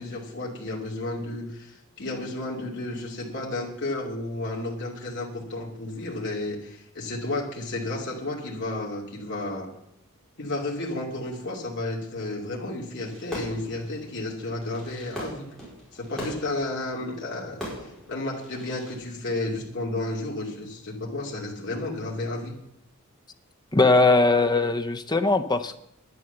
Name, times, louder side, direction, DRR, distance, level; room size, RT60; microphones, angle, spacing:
voice 1, 0.0-9.7 10.4-15.5 15.9-17.7 18.1-22.5, left 2 dB, 50° left, -2 dB, 2.6 m, -32 dB
Fireworks, 13.0-19.0, equal, ahead, 4.8 m, -40 dB
voice 2, 23.7-25.8, left 3 dB, 20° left, 9 dB, 0.6 m, -20 dB
11.0 x 10.0 x 6.8 m, 0.81 s
head